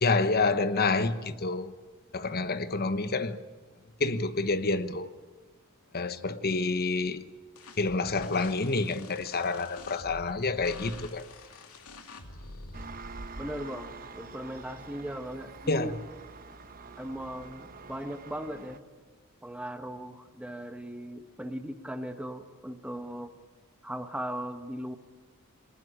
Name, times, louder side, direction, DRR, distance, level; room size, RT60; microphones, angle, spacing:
voice 1, 0.0-1.7 2.1-3.4 4.0-5.1 5.9-7.2 7.8-11.2 15.7-15.9, left 3 dB, 45° left, 1.1 m, -28 dB
sound 1, 7.6-12.9, left 3 dB, 85° left, 2.5 m, -47 dB
Engine, 12.7-18.8, right 3 dB, 40° right, 1.0 m, -45 dB
voice 2, 13.4-16.0 17.0-18.8 19.4-23.3 23.8-25.0, equal, 5° right, 1.1 m, -38 dB
21.5 x 19.5 x 9.9 m
head